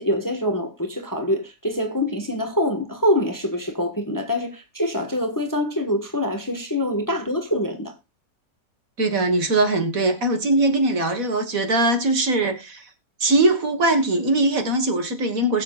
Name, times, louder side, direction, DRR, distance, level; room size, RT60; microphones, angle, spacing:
voice 1, 0.0-7.9, left 1 dB, 15° left, 1.2 m, -25 dB
voice 2, 9.0-12.9 13.2-15.6, right 2 dB, 55° right, 1.9 m, -21 dB
21.0 x 7.3 x 2.4 m
omnidirectional pair, 1.8 m